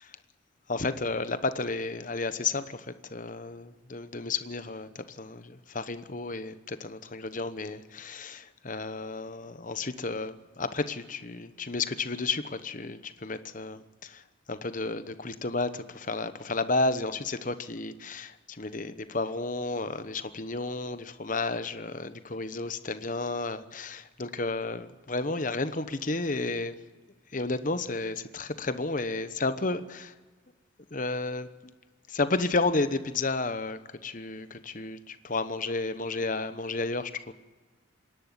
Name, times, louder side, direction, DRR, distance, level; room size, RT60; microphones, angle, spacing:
voice 1, 0.7-26.8 27.3-30.1 30.9-31.7 32.1-37.3, left 3 dB, 40° left, 12 dB, 1.0 m, -32 dB
26.5 x 11.5 x 9.8 m, 1.3 s
head